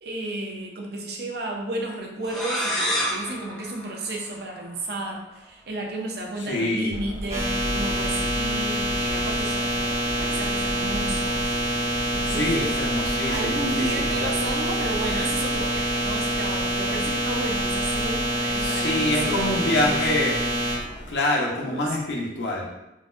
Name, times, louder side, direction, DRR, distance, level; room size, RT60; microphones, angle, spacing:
voice 1, 0.0-9.8 10.2-11.5 12.1-12.8 13.3-20.0 21.6-22.0, right 2 dB, 60° right, 0 dB, 0.5 m, -32 dB
sound 1, 2.2-4.8, equal, ahead, 0.4 m, -29 dB
voice 2, 6.5-6.9 12.3-14.4 18.6-20.3 21.1-22.7, left 1 dB, 85° left, -2 dB, 0.7 m, -26 dB
Subway metro underground, 6.9-21.2, equal, 80° right, 0.9 m, -36 dB
sound 2, 7.3-20.8, equal, 40° right, 0.9 m, -26 dB
3.9 x 2.1 x 2.5 m, 0.91 s
head